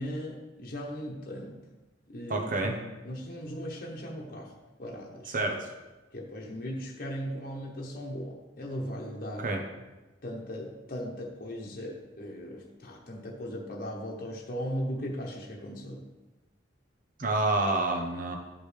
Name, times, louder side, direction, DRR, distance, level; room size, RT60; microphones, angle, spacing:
voice 1, 0.0-1.6 2.1-2.7 3.0-4.5 4.8-5.3 6.1-9.5 10.2-16.0, equal, 45° left, -2 dB, 1.0 m, -38 dB
voice 2, 2.3-2.8 5.3-5.7 9.4-9.6 17.2-18.4, right 2 dB, 45° right, 3 dB, 0.9 m, -28 dB
11.5 x 5.1 x 3.3 m, 1.1 s
head